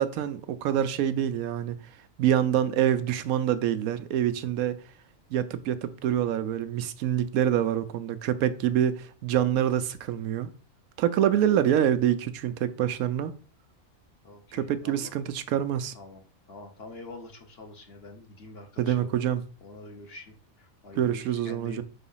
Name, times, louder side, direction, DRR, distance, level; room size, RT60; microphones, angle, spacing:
voice 1, 0.0-1.8 2.2-4.8 5.3-10.5 11.0-13.3 14.5-15.9 18.8-19.4 21.0-21.8, right 10 dB, 85° right, 1.1 m, -26 dB
voice 2, 14.2-15.2 15.9-16.2 16.5-19.1 19.6-21.8, left 2 dB, 50° left, 1.2 m, -46 dB
4.9 x 3.9 x 5.5 m
omnidirectional pair, 1.5 m